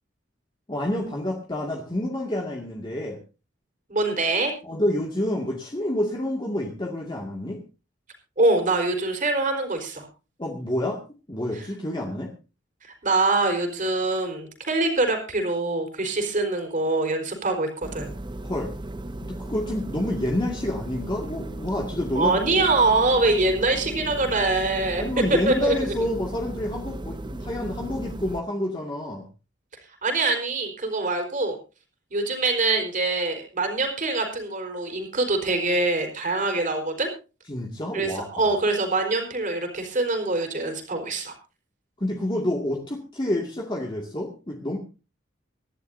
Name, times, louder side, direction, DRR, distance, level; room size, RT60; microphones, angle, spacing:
voice 1, 0.7-3.2 4.6-7.6 10.4-11.0 11.3-12.3 18.4-18.7 19.2-22.6 25.0-29.3 37.5-38.6 42.0-44.8, left 1 dB, 25° left, -1 dB, 2.2 m, -28 dB
voice 2, 3.9-4.5 8.4-10.1 11.5-11.6 12.8-18.1 22.1-25.0 25.5-25.7 30.0-31.5 32.1-37.1 37.9-41.3, right 2 dB, 45° right, 4 dB, 4.3 m, -24 dB
sound 1, 17.8-28.4, right 1 dB, 25° right, 0.7 m, -36 dB
25.0 x 11.5 x 2.7 m, 0.33 s
head